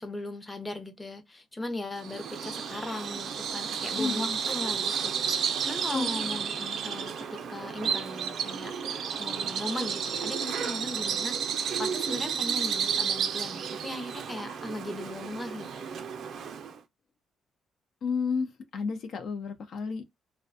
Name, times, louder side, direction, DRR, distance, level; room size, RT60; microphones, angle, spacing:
voice 1, 0.0-11.5 11.8-15.9, left 2 dB, 20° left, 0.6 m, -38 dB
Bird vocalization bird call bird song, 2.0-16.8, right 7 dB, 65° right, 0.4 m, -32 dB
voice 2, 3.9-4.4 5.9-6.2 18.0-20.0, left 5 dB, 65° left, 0.4 m, -31 dB
2.4 x 2.1 x 2.6 m
cardioid pair, 90°, 0 cm